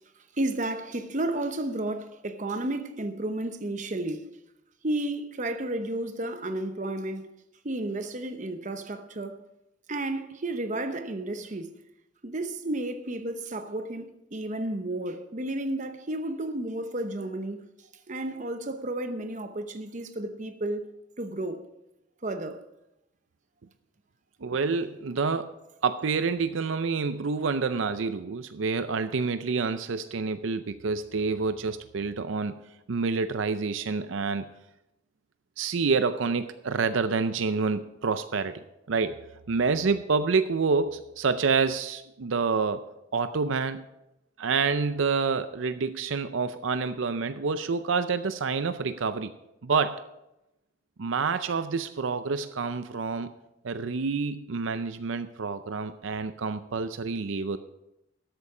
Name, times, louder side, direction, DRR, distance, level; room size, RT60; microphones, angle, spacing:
voice 1, 0.4-4.3 4.8-7.3 7.6-9.4 9.9-11.7 12.2-17.7 18.1-20.9 21.2-21.6 22.2-22.6, right 1 dB, 40° right, 0.9 m, -32 dB
voice 2, 24.4-25.5 25.8-32.5 32.9-34.5 35.6-38.6 38.9-39.2 39.5-42.8 43.1-43.8 44.4-49.3 49.6-50.0 51.0-53.3 53.6-57.6, right 4 dB, 75° right, 0.5 m, -28 dB
13.0 x 8.2 x 4.9 m
head